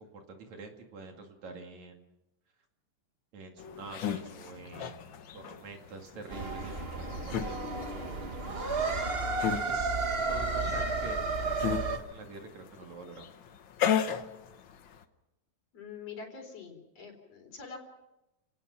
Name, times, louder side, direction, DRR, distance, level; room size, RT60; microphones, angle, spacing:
voice 1, 0.0-2.0 3.3-4.9 5.3-9.1 9.5-10.0 10.3-13.3, right 3 dB, 60° right, 3 dB, 3.5 m, -47 dB
sound 1, 3.6-15.0, left 8 dB, 90° left, 1.0 m, -36 dB
sound 2, 6.3-12.0, right 3 dB, 45° right, 0.7 m, -32 dB
voice 2, 15.7-17.8, left 5 dB, 50° left, 3 dB, 4.8 m, -45 dB
29.0 x 18.5 x 5.9 m, 0.91 s
omnidirectional pair, 3.8 m